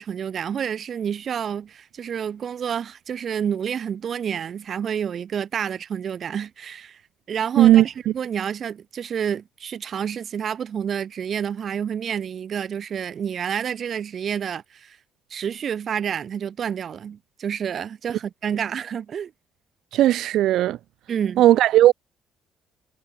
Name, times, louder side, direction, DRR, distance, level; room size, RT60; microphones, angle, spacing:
voice 1, 0.0-7.0 7.3-15.0 15.3-19.3 21.1-21.5, right 8 dB, 45° right, 0.7 m, -29 dB
voice 2, 19.9-20.8 21.4-21.9, right 13 dB, 75° right, 0.4 m, -15 dB
cardioid pair, 125°, 0 cm